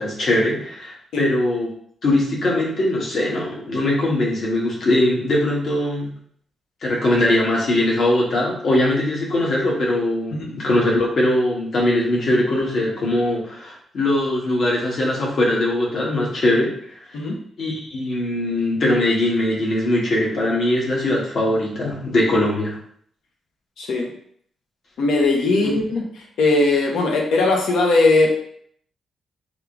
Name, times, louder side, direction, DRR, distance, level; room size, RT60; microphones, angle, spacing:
voice 1, 0.0-1.7 2.0-6.1 6.8-16.8 17.6-22.8, left 1 dB, 55° left, -3 dB, 1.1 m, -21 dB
voice 2, 23.8-24.1 25.0-26.0 26.4-28.3, left 2 dB, 85° left, 0 dB, 0.8 m, -19 dB
3.6 x 2.4 x 3.4 m, 0.62 s
cardioid pair, 140°, 0 cm